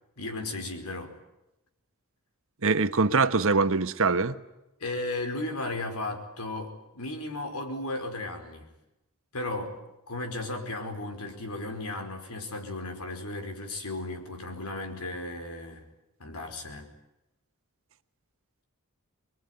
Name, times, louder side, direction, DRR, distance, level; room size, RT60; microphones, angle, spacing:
voice 1, 0.2-1.2 4.8-8.7 9.3-9.8 10.1-15.8 16.2-16.9, left 2 dB, 85° left, 5 dB, 4.9 m, -35 dB
voice 2, 2.6-4.3, right 4 dB, 65° right, 10 dB, 1.2 m, -23 dB
25.0 x 22.0 x 9.7 m, 0.93 s
head